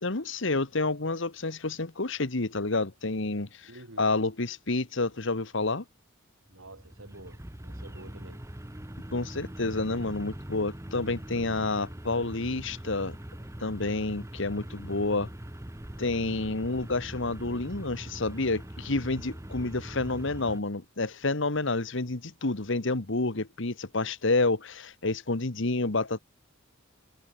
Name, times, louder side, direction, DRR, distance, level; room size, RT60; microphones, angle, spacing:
voice 1, 0.0-3.7 4.0-5.8 9.1-13.2 13.6-15.3 16.0-26.2, left 3 dB, 65° left, 1.5 m, -29 dB
voice 2, 3.6-4.1 6.5-8.4, right 2 dB, 80° right, 5.3 m, -49 dB
sound 1, 6.5-20.6, right 1 dB, 15° right, 1.3 m, -42 dB
head